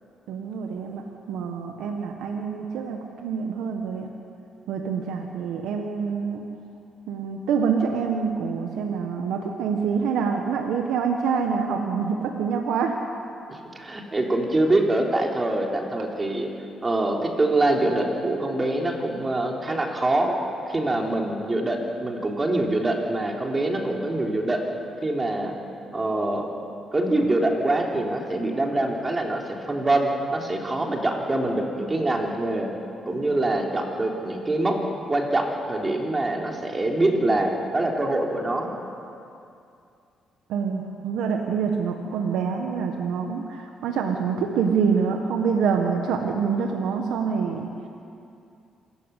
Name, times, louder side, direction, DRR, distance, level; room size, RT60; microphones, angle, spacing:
voice 1, 0.3-1.0 1.3-4.1 4.7-6.4 7.1-13.0 40.5-47.7, right 6 dB, 85° right, 2 dB, 1.6 m, -26 dB
voice 2, 13.5-16.5 16.8-20.3 20.7-24.6 25.0-25.5 25.9-26.5 26.9-29.4 29.7-32.7 33.1-34.8 35.1-38.7, right 2 dB, 25° right, 0 dB, 3.6 m, -24 dB
26.5 x 13.5 x 8.4 m, 2.6 s
cardioid pair, 90°, 0 cm